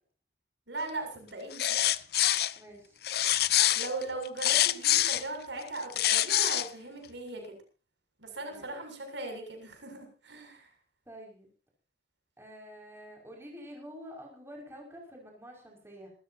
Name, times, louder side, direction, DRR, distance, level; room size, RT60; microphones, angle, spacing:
voice 1, 0.7-1.9 3.7-7.5 8.2-10.7, right 2 dB, 75° right, 4 dB, 7.3 m, -39 dB
sound 1, 1.5-2.5 3.0-5.2 5.8-6.7, left 13 dB, 55° left, 0.7 m, -25 dB
voice 2, 2.6-3.0 8.4-8.8 11.1-11.5 12.4-16.1, equal, 15° right, 0 dB, 5.9 m, -48 dB
27.0 x 14.0 x 2.8 m, 0.37 s
head